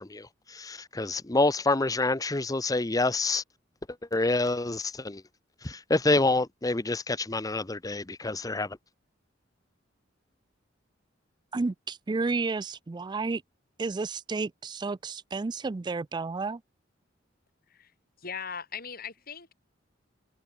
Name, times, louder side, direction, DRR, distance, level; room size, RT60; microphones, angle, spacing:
voice 1, 0.0-3.4 4.1-5.2 5.6-8.8, left 2 dB, 20° left, 0.8 m, -27 dB
voice 2, 11.5-13.4 13.8-16.6, right 3 dB, 25° right, 0.4 m, -31 dB
voice 3, 18.2-19.5, left 6 dB, 50° left, 6.1 m, -39 dB
head